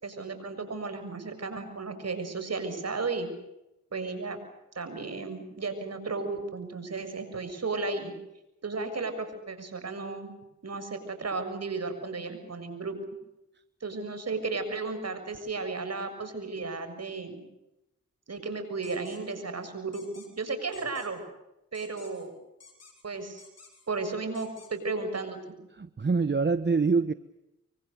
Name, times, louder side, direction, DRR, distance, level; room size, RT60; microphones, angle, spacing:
voice 1, 0.0-3.3 3.9-4.4 4.7-8.1 8.6-10.3 10.6-12.9 13.8-17.4 18.3-21.2 21.7-22.3 23.0-23.4 23.9-25.5, right 3 dB, 55° right, 9 dB, 6.8 m, -34 dB
sound 1, 18.8-19.2 19.9-20.3 20.7-21.1 21.7-22.3 22.6-23.0 23.4-23.9 24.3-24.7, left 4 dB, 55° left, 7.4 m, -53 dB
voice 2, 25.7-27.1, right 4 dB, 35° right, 13 dB, 1.1 m, -25 dB
25.5 x 24.5 x 6.9 m, 0.90 s
cardioid pair, 50°, 30 cm